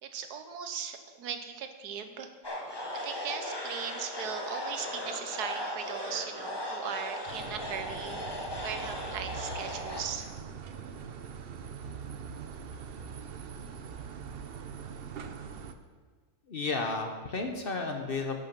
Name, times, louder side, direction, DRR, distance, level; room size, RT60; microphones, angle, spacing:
voice 1, 0.0-2.3 2.9-8.2 8.6-10.3, right 7 dB, 85° right, 8 dB, 1.4 m, -38 dB
sound 1, 2.4-10.0, left 1 dB, 15° left, 1.2 m, -37 dB
sound 2, 7.3-15.7, right 6 dB, 55° right, 0.6 m, -42 dB
voice 2, 16.5-18.4, left 3 dB, 45° left, 3 dB, 0.9 m, -32 dB
10.5 x 6.7 x 5.9 m, 1.5 s
omnidirectional pair, 1.6 m